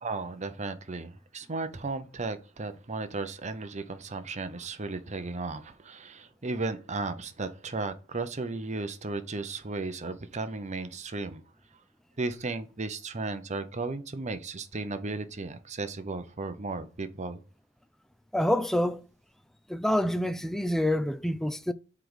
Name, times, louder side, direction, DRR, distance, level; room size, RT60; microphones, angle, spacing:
voice 1, 0.0-11.4 12.2-17.4, right 3 dB, 30° right, 0.7 m, -35 dB
voice 2, 18.3-19.0 19.7-21.7, left 1 dB, ahead, 0.3 m, -27 dB
6.0 x 4.6 x 5.0 m
head